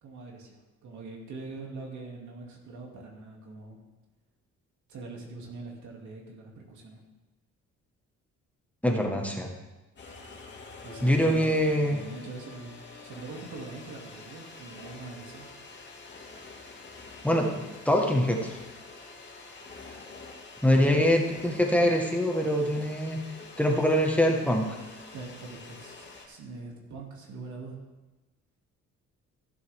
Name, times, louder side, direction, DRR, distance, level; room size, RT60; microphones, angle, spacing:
voice 1, 0.0-3.8 4.9-7.0 10.8-12.7 13.0-15.5 20.6-21.0 25.1-27.8, right 3 dB, 70° right, 0 dB, 2.8 m, -43 dB
voice 2, 8.8-9.5 11.0-12.0 17.2-18.6 20.6-23.2 23.6-24.7, equal, 5° left, 1 dB, 1.6 m, -24 dB
sound 1, 10.0-26.3, left 3 dB, 35° left, 2.3 m, -47 dB
15.0 x 7.8 x 3.7 m, 1.1 s
cardioid pair, 90°, 30 cm